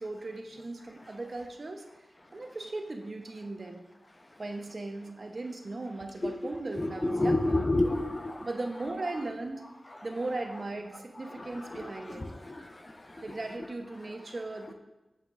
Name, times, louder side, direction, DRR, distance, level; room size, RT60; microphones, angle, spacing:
voice 1, 0.0-1.8 2.3-3.8 4.4-7.7 8.4-9.6 10.0-12.2 13.2-14.7, right 2 dB, 50° right, 4 dB, 0.9 m, -37 dB
voice 2, 6.8-8.5 11.3-11.9 12.1-12.6, left 2 dB, 30° left, 5 dB, 0.7 m, -29 dB
9.2 x 7.3 x 2.5 m, 1.0 s
wide cardioid pair, 65°, 0 cm